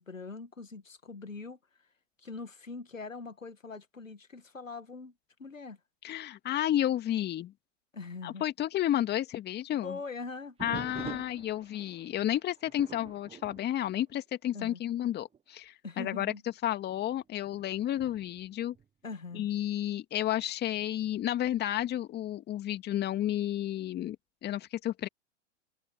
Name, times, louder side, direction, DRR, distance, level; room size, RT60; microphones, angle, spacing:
voice 1, 0.0-1.6 2.2-5.1 5.4-5.8 7.9-8.4 9.8-11.2 14.5-14.8 15.8-16.4 19.0-19.5, left 4 dB, 90° left, 2.0 m, -42 dB
voice 2, 6.0-7.5 8.2-10.0 10.6-16.3 16.6-18.7 19.3-24.2 24.4-25.1, left 12 dB, 25° left, 2.4 m, -31 dB
sound 1, 10.6-14.7 15.1-15.4 16.0-16.1 16.9-19.6 21.4-21.9, right 7 dB, 15° right, 1.4 m, -48 dB
figure-of-eight pair, 105°, 38 cm